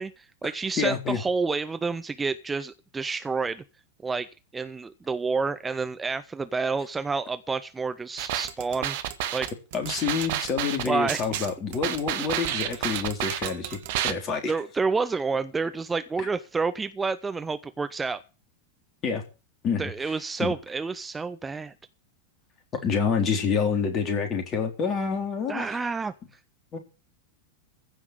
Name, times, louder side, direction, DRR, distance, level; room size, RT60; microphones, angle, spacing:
voice 1, 0.0-3.6 4.0-4.3 4.5-9.0 9.3-9.5 10.8-11.3 12.2-12.3 12.7-13.0 14.5-18.2 19.8-21.7 25.5-26.1, right 4 dB, 15° right, 11 dB, 0.8 m, -29 dB
voice 2, 0.8-1.2 9.7-14.5 16.2-16.3 19.0-19.2 19.6-20.1 20.4-20.5 22.8-25.8 26.7-26.8, left 6 dB, 30° left, 5 dB, 3.8 m, -27 dB
sound 1, 8.2-14.1, right 12 dB, 50° right, 1.5 m, -30 dB
15.5 x 5.9 x 9.3 m, 0.33 s
figure-of-eight pair, 90°, 0 cm